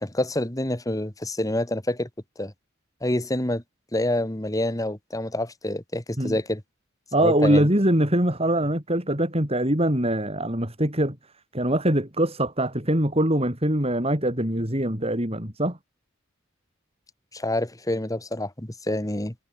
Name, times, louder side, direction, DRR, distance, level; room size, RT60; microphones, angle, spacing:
voice 1, 0.0-2.1 2.4-2.5 3.0-3.6 3.9-6.6 7.2-7.7 17.3-19.3, left 1 dB, 15° left, 1.7 m, -27 dB
voice 2, 7.1-11.2 11.5-15.8, right 1 dB, 30° right, 6.0 m, -23 dB
head